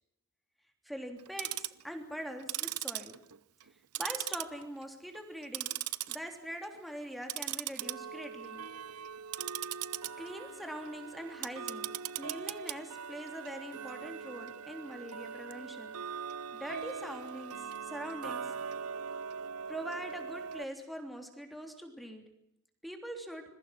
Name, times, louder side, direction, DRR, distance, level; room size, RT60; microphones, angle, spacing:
voice 1, 0.8-3.2 4.0-5.7 6.1-8.6 10.2-11.9 12.1-16.0 16.5-18.5 19.7-22.2 22.8-23.4, equal, ahead, 4 dB, 3.3 m, -43 dB
Tick-tock, 1.2-1.8 2.4-3.7 4.0-4.8 5.2-6.2 6.5-6.8 7.2-20.6, right 9 dB, 80° right, 0.8 m, -40 dB
27.0 x 22.0 x 6.1 m, 0.81 s
head